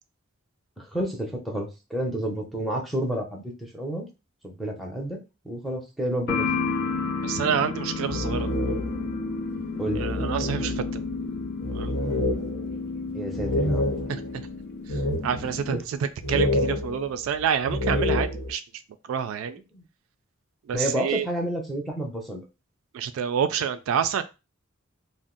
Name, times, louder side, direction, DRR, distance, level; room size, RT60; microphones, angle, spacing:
voice 1, 0.8-4.1 4.4-5.2 5.4-6.5 9.8-10.0 13.1-13.9 15.4-15.9 19.7-19.8 20.7-22.4, right 1 dB, ahead, 0.7 m, -30 dB
sound 1, 6.3-15.8, left 4 dB, 50° left, 0.4 m, -31 dB
voice 2, 7.2-8.5 10.0-10.7 11.7-11.9 14.1-14.5 15.2-15.8 16.3-18.6 19.1-19.6 20.7-21.3 22.9-24.2, right 8 dB, 75° right, 0.3 m, -27 dB
sound 2, 7.8-9.2 9.5-9.6 9.8-14.4 14.9-15.7 16.2-18.5, left 1 dB, 80° left, 0.9 m, -28 dB
2.5 x 2.0 x 3.7 m
head